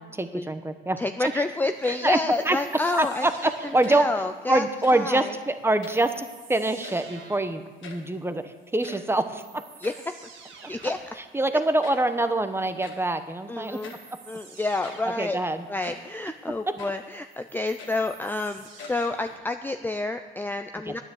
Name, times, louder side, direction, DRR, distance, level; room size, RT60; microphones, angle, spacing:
voice 1, 0.0-1.4 1.9-2.2 2.4-2.6 2.9-4.1 4.5-9.6 11.3-13.8 15.2-15.7 16.7-16.8 20.9-21.0, right 2 dB, 10° right, 9 dB, 1.0 m, -25 dB
voice 2, 1.0-3.3 3.9-4.6 4.9-5.3 9.8-9.9 10.7-11.0 13.5-13.9 14.3-15.4 15.7-21.0, left 2 dB, 10° left, 7 dB, 0.5 m, -29 dB
sound 1, 1.6-2.3 2.7-3.2 3.7-4.2 4.7-5.2 5.6-6.4 6.6-7.3 7.5-7.6 7.8-8.2 8.6-10.2 10.8-11.2 11.8-12.2 12.8-13.2 13.8-14.1 14.6-15.2 15.8-16.2 16.8-17.1 17.5-18.4 18.8-19.4, left 5 dB, 75° left, 1.7 m, -45 dB
sound 2, 2.3-4.3 5.8-7.6 8.9-9.0 9.4-11.2 13.6-15.4 17.1-19.6, right 5 dB, 75° right, 1.9 m, -49 dB
9.8 x 9.6 x 7.8 m, 1.3 s
cardioid pair, 90°, 20 cm